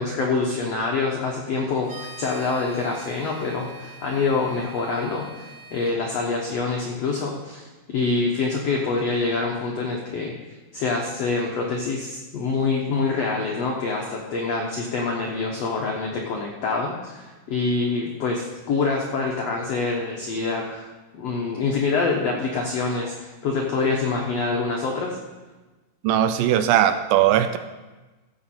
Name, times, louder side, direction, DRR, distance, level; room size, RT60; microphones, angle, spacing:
voice 1, 0.0-10.3 10.7-20.9 21.2-25.2, left 4 dB, 80° left, 0 dB, 1.4 m, -26 dB
sound 1, 1.8-5.9, right 2 dB, 50° right, 2.2 m, -44 dB
voice 2, 26.0-27.6, right 11 dB, 80° right, 10 dB, 2.2 m, -19 dB
15.0 x 7.3 x 4.3 m, 1.2 s
omnidirectional pair, 4.3 m